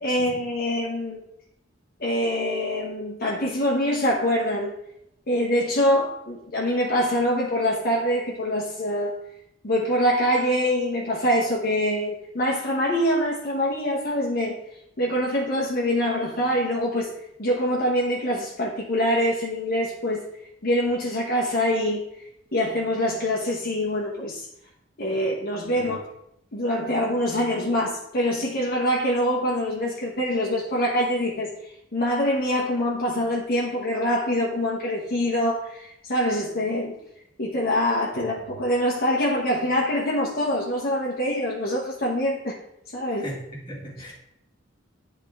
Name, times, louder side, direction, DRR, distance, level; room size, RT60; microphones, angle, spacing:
voice 1, 0.0-1.2 2.0-4.7 5.3-9.2 9.6-14.6 15.0-17.1 17.4-20.2 20.6-22.0 22.5-24.5 25.0-26.0 26.5-31.5 31.9-37.0 37.4-42.6 42.9-43.3, equal, 50° left, -3 dB, 1.0 m, -24 dB
voice 2, 38.1-38.6 43.2-43.4 43.7-44.1, equal, 25° left, -3 dB, 1.7 m, -37 dB
10.0 x 3.7 x 3.5 m, 0.80 s
head